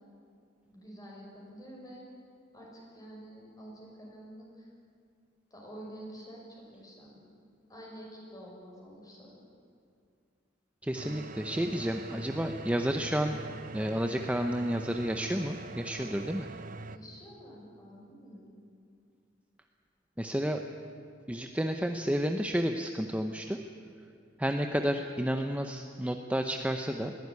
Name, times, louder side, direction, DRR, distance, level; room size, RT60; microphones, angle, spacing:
voice 1, 0.7-2.0 2.5-4.7 5.5-7.2 7.7-9.3 16.9-18.6, equal, 20° left, -2 dB, 6.4 m, -48 dB
voice 2, 10.8-13.4 13.7-16.5 20.2-20.6 21.3-23.6 24.4-27.1, equal, 10° right, 5 dB, 0.8 m, -31 dB
sound 1, 10.9-17.0, right 3 dB, 45° right, 0.7 m, -43 dB
21.5 x 16.0 x 9.7 m, 2.3 s
head